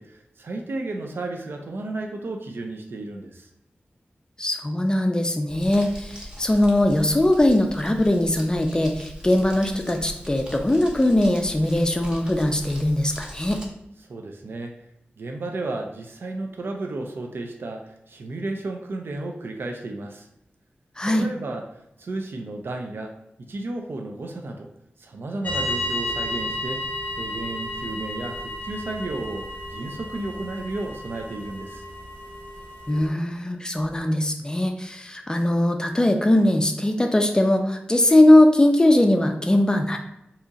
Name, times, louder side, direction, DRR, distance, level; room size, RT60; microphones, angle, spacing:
voice 1, 0.0-3.5 14.1-14.7 15.2-20.3 21.0-24.7 25.0-26.8 27.2-31.8, right 2 dB, 70° right, 3 dB, 0.4 m, -33 dB
voice 2, 4.4-13.6 21.0-21.3 32.9-40.0, left 1 dB, 20° left, 4 dB, 0.4 m, -20 dB
Crumpling crinkling, 5.5-13.7, equal, 20° right, 0.8 m, -40 dB
sound 1, 25.4-33.1, left 1 dB, 40° left, 0.7 m, -32 dB
2.7 x 2.4 x 3.9 m, 0.82 s
wide cardioid pair, 85°, 4 cm